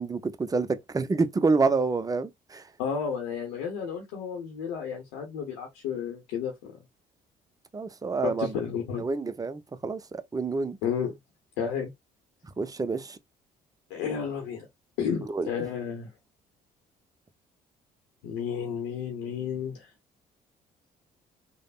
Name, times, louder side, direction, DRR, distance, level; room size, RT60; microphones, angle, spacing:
voice 1, 0.0-2.7 7.7-8.5 9.0-10.8 12.4-13.2 15.3-15.5, right 4 dB, 20° right, 0.5 m, -28 dB
voice 2, 2.8-6.7 8.2-9.1 10.8-11.1 11.6-11.9 13.9-14.7 15.0-16.1 18.2-19.9, left 7 dB, 85° left, 0.8 m, -32 dB
3.4 x 2.1 x 2.3 m
supercardioid pair, 65°, 18 cm